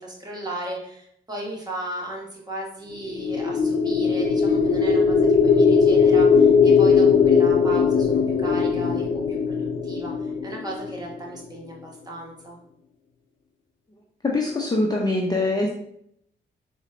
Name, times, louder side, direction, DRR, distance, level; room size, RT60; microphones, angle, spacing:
voice 1, 0.0-12.6, right 1 dB, 20° right, -3 dB, 1.3 m, -36 dB
sound 1, 3.1-11.2, left 5 dB, 70° left, 0.4 m, -19 dB
voice 2, 14.2-15.7, left 2 dB, 20° left, -1 dB, 0.6 m, -23 dB
3.9 x 2.1 x 2.5 m, 0.70 s
supercardioid pair, 45°, 20 cm